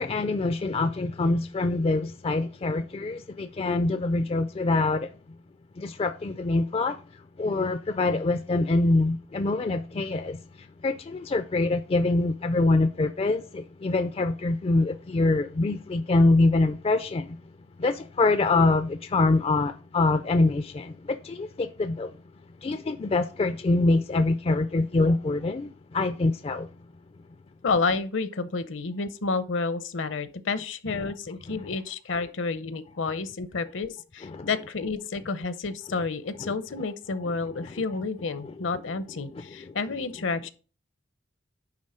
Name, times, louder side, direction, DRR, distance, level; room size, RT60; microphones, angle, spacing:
voice 1, 0.0-5.1 5.8-7.0 7.4-10.4 10.8-17.4 17.8-22.1 22.6-26.7 30.9-31.1 31.5-31.6 34.2-34.5 36.4-36.6 37.3-37.8 39.3-39.7, left 2 dB, 30° left, 0.4 m, -25 dB
voice 2, 27.6-40.5, left 4 dB, 65° left, 0.7 m, -30 dB
9.8 x 3.7 x 5.0 m
head